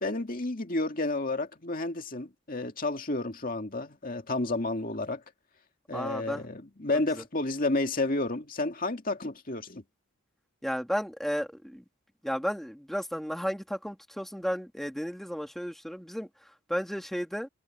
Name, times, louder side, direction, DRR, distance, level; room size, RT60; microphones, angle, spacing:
voice 1, 0.0-5.2 5.9-9.8, left 2 dB, 40° left, 2.2 m, -31 dB
voice 2, 5.9-6.5 7.2-7.3 10.6-11.8 12.2-16.3 16.7-17.5, equal, ahead, 2.9 m, -33 dB
head